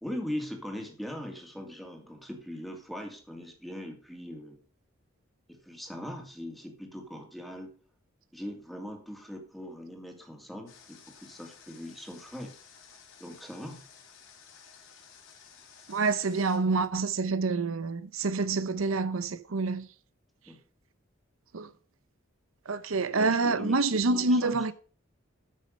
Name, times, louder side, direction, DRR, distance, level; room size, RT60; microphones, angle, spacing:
voice 1, 0.0-4.6 5.5-7.7 8.3-12.5 13.2-13.8 20.5-20.6 23.1-24.7, equal, ahead, 2.5 m, -40 dB
Water, 10.7-16.6, left 6 dB, 75° left, 3.9 m, -54 dB
voice 2, 15.9-19.9 21.5-21.7 22.7-24.7, right 3 dB, 85° right, 0.7 m, -27 dB
13.0 x 6.4 x 5.3 m
head